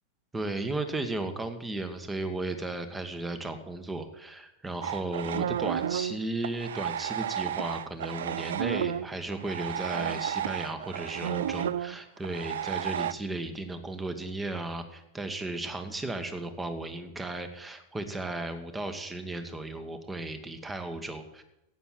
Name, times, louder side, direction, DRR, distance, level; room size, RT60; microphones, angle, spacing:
voice 1, 0.3-21.4, right 2 dB, 10° right, 9 dB, 1.6 m, -35 dB
sound 1, 4.8-13.1, right 10 dB, 60° right, 0.4 m, -32 dB
13.0 x 8.6 x 7.6 m, 0.86 s
figure-of-eight pair, 90°, 0 cm